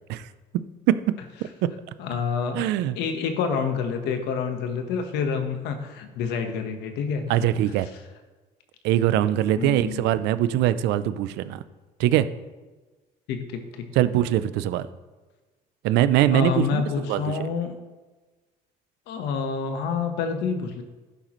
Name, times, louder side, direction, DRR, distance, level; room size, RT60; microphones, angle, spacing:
voice 1, 2.0-2.6 3.0-7.3 9.6-10.0 13.3-13.9 16.3-17.8 19.1-20.8, left 6 dB, 90° left, 6 dB, 1.3 m, -28 dB
voice 2, 2.6-2.9 7.3-7.9 8.8-11.6 12.0-12.3 14.0-14.9 15.8-17.4, right 12 dB, 90° right, 14 dB, 0.5 m, -22 dB
11.5 x 9.3 x 3.1 m, 1.2 s
cardioid pair, 110°, 17 cm